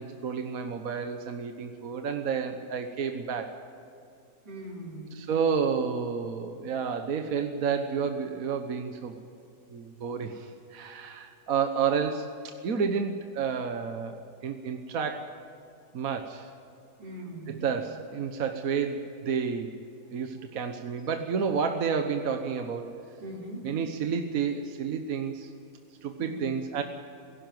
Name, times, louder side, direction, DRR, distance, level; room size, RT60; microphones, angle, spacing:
voice 1, 0.0-3.6 5.1-9.2 9.7-14.1 14.4-15.3 15.9-16.5 17.5-19.8 20.1-22.9 23.6-25.5 26.0-26.8, right 6 dB, 60° right, 6 dB, 1.5 m, -30 dB
voice 2, 4.4-5.3 17.0-17.6 23.2-23.7 26.2-26.4, right 1 dB, 90° right, -2 dB, 4.8 m, -40 dB
18.0 x 16.5 x 9.4 m, 2.6 s
omnidirectional pair, 1.7 m